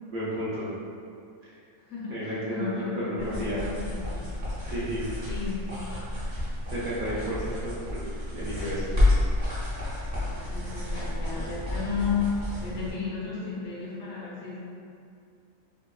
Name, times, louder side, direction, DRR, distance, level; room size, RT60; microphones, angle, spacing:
voice 1, 0.1-0.7 2.1-3.6 4.6-5.0 6.7-8.0 8.3-8.9, right 1 dB, 60° right, -9 dB, 0.5 m, -32 dB
voice 2, 1.8-4.3 5.3-5.8 10.1-14.6, left 5 dB, 70° left, -7 dB, 1.0 m, -33 dB
sound 1, 3.2-12.9, left 2 dB, 40° right, 0.8 m, -30 dB
2.7 x 2.3 x 2.3 m, 2.4 s
omnidirectional pair, 1.4 m